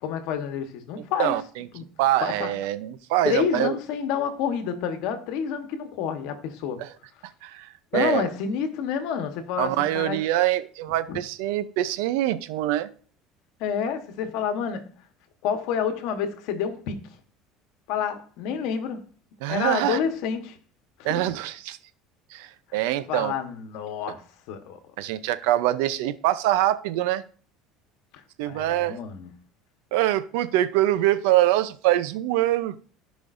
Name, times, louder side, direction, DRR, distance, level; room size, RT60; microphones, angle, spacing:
voice 1, 0.0-1.4 1.7-1.8 2.2-2.5 3.2-6.8 7.9-10.2 11.1-11.2 13.6-14.9 15.4-17.1 17.9-19.0 19.5-20.6 21.0-21.4 22.7-22.8 23.1-24.8 28.5-29.3, left 7 dB, 70° left, 1.2 m, -29 dB
voice 2, 1.2-1.7 2.0-3.7 6.8-6.9 7.2-8.3 9.6-12.9 19.4-20.0 21.0-21.8 22.3-23.3 25.0-27.2 28.4-29.0 29.9-32.8, right 14 dB, 85° right, 0.6 m, -24 dB
15.5 x 5.2 x 2.6 m
cardioid pair, 135°, 0 cm